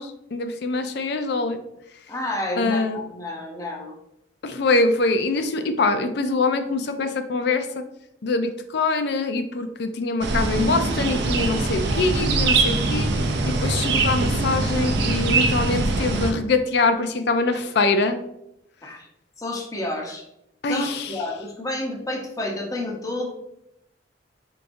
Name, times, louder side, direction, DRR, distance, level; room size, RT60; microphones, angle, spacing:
voice 1, 0.0-1.6 2.6-3.0 4.4-7.8 8.2-13.1 13.5-18.2 20.6-21.1, left 3 dB, 65° left, 8 dB, 0.4 m, -24 dB
voice 2, 2.1-3.9 18.8-19.1 19.4-20.2 20.7-23.3, left 1 dB, 20° left, 0 dB, 0.7 m, -30 dB
sound 1, 10.2-16.3, right 3 dB, 65° right, 0.5 m, -22 dB
4.7 x 3.5 x 2.6 m, 0.80 s
head